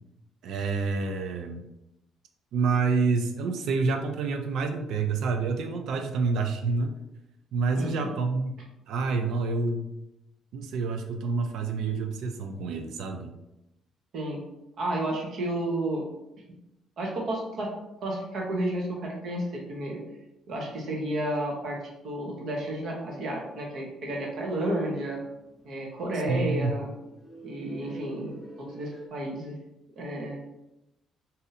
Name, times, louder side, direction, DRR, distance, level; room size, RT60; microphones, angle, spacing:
voice 1, 0.4-1.6 2.5-6.9 7.5-8.5 8.9-9.9 10.5-13.3 26.3-26.7, right 4 dB, 70° right, 5 dB, 0.4 m, -28 dB
voice 2, 7.8-8.1 14.1-14.4 14.8-16.0 17.0-17.7 18.0-20.0 20.5-21.8 22.0-25.2 25.6-26.9 27.4-29.6 30.0-30.5, right 1 dB, 55° right, -1 dB, 1.0 m, -31 dB
sound 1, 22.7-23.8 24.1-24.2 24.4-24.6 24.9-29.1, right 1 dB, 10° left, 0.8 m, -49 dB
2.7 x 2.6 x 4.0 m, 0.89 s
cardioid pair, 150°, 0 cm